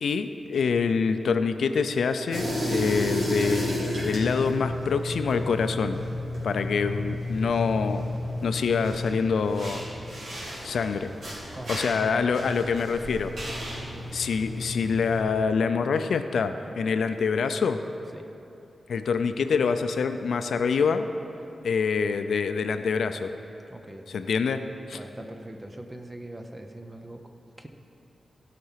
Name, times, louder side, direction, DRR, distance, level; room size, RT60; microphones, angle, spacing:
voice 1, 0.0-6.0 6.4-8.0 8.4-9.8 10.6-11.1 11.7-13.7 14.1-17.8 18.9-21.1 21.6-23.3 24.1-24.6 24.9-25.0, left 5 dB, 85° left, 9 dB, 0.5 m, -26 dB
sound 1, 2.3-15.2, left 1 dB, 75° right, 3.1 m, -32 dB
voice 2, 11.5-12.1 13.8-14.1 18.1-18.3 23.7-24.1 24.9-27.7, right 1 dB, 15° right, 5 dB, 0.7 m, -42 dB
16.5 x 5.9 x 5.7 m, 2.9 s
wide cardioid pair, 160°, 0 cm